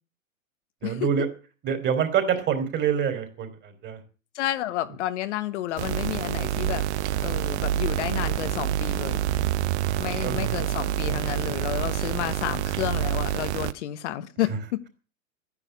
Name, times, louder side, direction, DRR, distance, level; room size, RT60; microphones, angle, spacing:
voice 1, 0.8-1.3 1.6-4.0 9.9-10.4 14.5-14.6, right 7 dB, 25° right, 3.8 m, -26 dB
voice 2, 4.3-6.8 7.2-9.2 10.0-14.8, left 13 dB, 55° left, 1.3 m, -31 dB
sound 1, 5.8-13.7, right 12 dB, 55° right, 0.8 m, -27 dB
14.0 x 10.0 x 8.1 m
hypercardioid pair, 125°, 41 cm